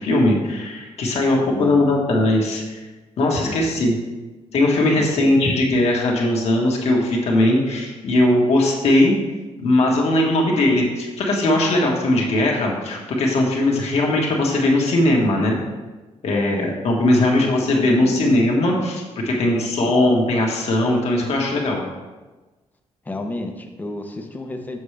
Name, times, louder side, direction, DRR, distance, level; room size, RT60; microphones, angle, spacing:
voice 1, 0.0-2.8 3.2-3.9 4.5-9.1 9.6-15.6 16.2-21.8, left 1 dB, 60° left, -1 dB, 1.4 m, -19 dB
voice 2, 1.4-2.0 3.4-3.9 4.9-5.3 16.3-16.7 17.4-17.5 17.8-18.3 19.2-19.7 23.0-24.8, left 2 dB, 15° left, 4 dB, 0.6 m, -32 dB
7.1 x 6.1 x 3.3 m, 1.2 s
wide cardioid pair, 170°, 12 cm